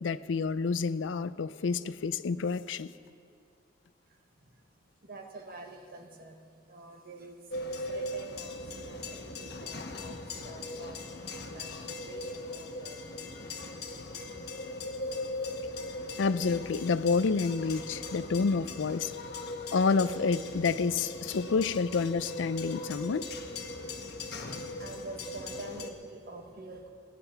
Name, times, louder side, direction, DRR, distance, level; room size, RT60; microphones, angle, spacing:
voice 1, 0.0-2.9 16.2-19.1 19.7-23.3, left 4 dB, 85° left, 15 dB, 0.5 m, -29 dB
voice 2, 4.1-4.5 5.0-13.1 13.6-13.7 24.8-26.9, right 2 dB, 50° right, 4 dB, 1.4 m, -47 dB
sound 1, 7.5-25.9, left 2 dB, 60° left, 1.2 m, -39 dB
17.5 x 9.3 x 5.8 m, 2.4 s
head